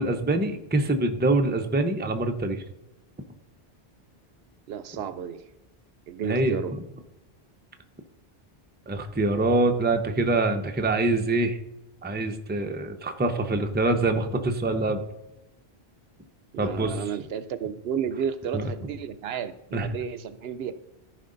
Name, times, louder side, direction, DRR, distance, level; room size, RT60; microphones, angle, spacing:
voice 1, 0.0-2.6 6.2-6.6 8.9-11.6 12.0-15.0 16.6-17.0 18.5-18.6 19.7-19.9, right 2 dB, 10° right, 6 dB, 0.6 m, -25 dB
voice 2, 4.7-5.4 6.1-6.8 16.5-20.7, right 8 dB, 75° right, 13 dB, 0.8 m, -32 dB
14.0 x 5.0 x 3.9 m, 0.92 s
omnidirectional pair, 1.1 m